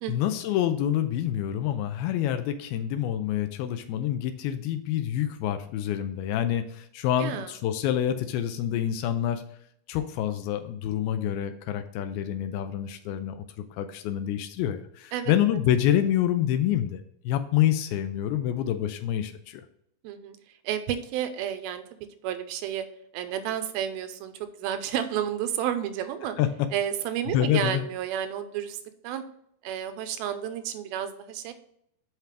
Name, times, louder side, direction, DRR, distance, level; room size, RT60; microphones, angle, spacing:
voice 1, 0.1-9.4 9.9-13.4 13.8-19.6 26.4-26.5 27.3-27.8, left 11 dB, 85° left, 8 dB, 2.5 m, -27 dB
voice 2, 7.2-7.5 15.1-15.3 20.0-20.4 20.6-21.8 22.2-22.9 23.1-26.4 26.7-28.8 29.0-29.2 29.6-31.5, right 10 dB, 85° right, 9 dB, 2.5 m, -31 dB
7.4 x 5.8 x 3.3 m, 0.72 s
omnidirectional pair, 4.3 m